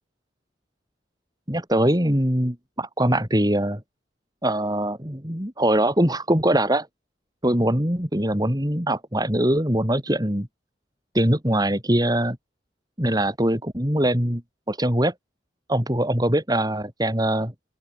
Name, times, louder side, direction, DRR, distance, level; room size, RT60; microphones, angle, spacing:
voice 1, 1.5-3.8 4.4-6.9 7.4-10.5 11.1-12.4 13.0-14.4 14.7-15.1 15.7-17.5, right 1 dB, 20° right, 6.2 m, -22 dB
open air
head